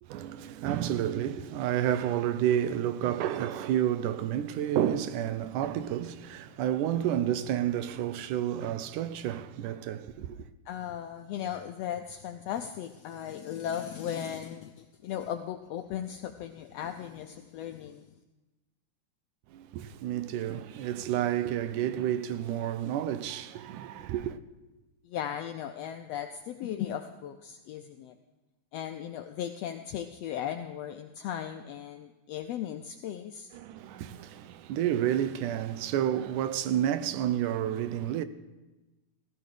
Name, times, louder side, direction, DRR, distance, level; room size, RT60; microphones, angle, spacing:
voice 1, 0.0-10.5 19.5-24.4 33.5-38.2, right 11 dB, 80° right, 2.2 m, -30 dB
voice 2, 10.7-18.1 25.0-28.1 28.7-33.5, left 9 dB, 85° left, 1.4 m, -37 dB
16.0 x 15.0 x 5.0 m
omnidirectional pair, 3.6 m